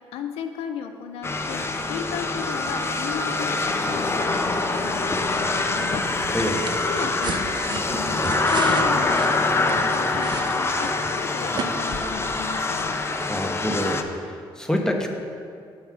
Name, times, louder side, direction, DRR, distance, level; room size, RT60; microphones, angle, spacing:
voice 1, 0.1-1.6 1.9-6.0 6.9-8.2 8.5-13.0, left 7 dB, 85° left, 7 dB, 0.5 m, -35 dB
sound 1, 1.2-14.0, left 3 dB, 25° left, 0.7 m, -25 dB
sound 2, 6.2-11.2 11.5-11.7, right 5 dB, 50° right, 0.7 m, -34 dB
voice 2, 13.3-15.1, equal, 5° left, 1 dB, 1.1 m, -26 dB
7.2 x 5.4 x 6.0 m, 2.3 s
supercardioid pair, 65°, 10 cm